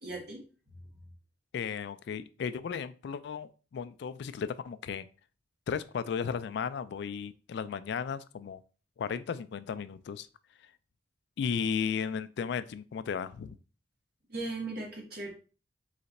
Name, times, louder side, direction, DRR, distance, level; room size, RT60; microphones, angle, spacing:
voice 1, 0.0-0.4 14.3-15.3, right 2 dB, 55° right, -1 dB, 1.6 m, -37 dB
voice 2, 1.5-5.1 5.7-8.6 9.0-10.3 11.4-13.6, left 6 dB, 65° left, 14 dB, 0.3 m, -35 dB
3.9 x 3.3 x 4.0 m, 0.37 s
head